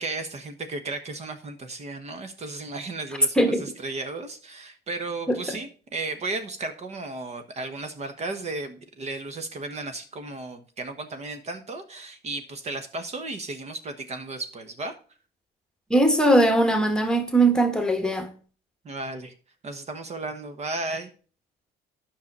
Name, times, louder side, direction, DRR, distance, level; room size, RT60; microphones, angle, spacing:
voice 1, 0.0-15.0 18.8-19.3 19.6-21.1, right 2 dB, 40° right, 1.2 m, -34 dB
voice 2, 15.9-18.3, right 1 dB, 5° left, 1.4 m, -20 dB
9.5 x 5.8 x 5.3 m
cardioid pair, 110°, 17 cm